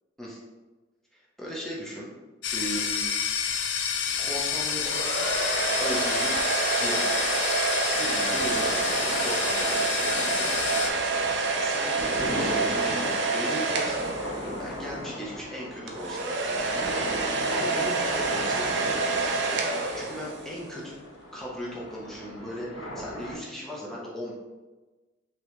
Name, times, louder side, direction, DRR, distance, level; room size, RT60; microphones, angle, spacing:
voice 1, 1.1-2.1 2.5-3.1 3.5-3.7 4.2-5.0 5.8-6.5 6.8-7.4 7.9-10.5 11.6-14.1 14.6-16.7 17.3-19.4 19.7-20.9 21.3-24.3, equal, ahead, -6 dB, 0.8 m, -37 dB
sound 1, 2.4-10.9, left 7 dB, 60° left, 0.4 m, -29 dB
sound 2, 4.7-14.8 15.9-20.6, right 3 dB, 60° right, 0.6 m, -28 dB
sound 3, 8.0-23.3, equal, 75° left, 1.4 m, -38 dB
5.3 x 3.0 x 3.0 m, 1.2 s
head